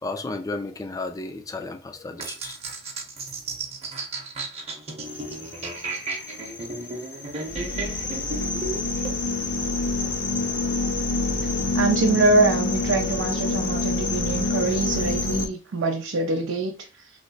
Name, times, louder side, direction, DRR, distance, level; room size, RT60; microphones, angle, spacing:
voice 1, 0.0-2.6, left 3 dB, 20° left, 0.4 m, -33 dB
sound 1, 2.2-9.1, right 3 dB, 35° right, 0.7 m, -34 dB
sound 2, 5.1-15.5, left 3 dB, 75° left, 0.7 m, -27 dB
voice 2, 11.7-17.1, right 3 dB, 90° right, 0.5 m, -24 dB
3.2 x 2.0 x 3.9 m
head